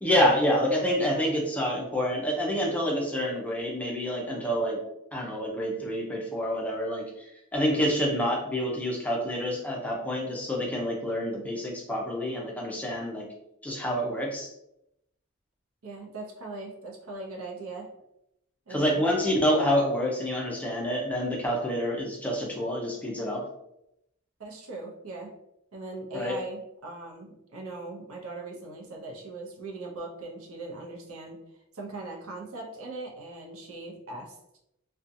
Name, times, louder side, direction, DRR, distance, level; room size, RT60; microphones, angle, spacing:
voice 1, 0.0-4.8 5.1-7.0 7.5-13.2 13.6-14.5 18.7-23.4 26.1-26.3, equal, 5° left, -3 dB, 0.5 m, -27 dB
voice 2, 15.8-17.9 18.7-19.0 24.4-25.3 25.7-31.4 31.7-34.4, right 2 dB, 75° right, 0 dB, 0.6 m, -40 dB
2.6 x 2.2 x 2.5 m, 0.81 s
head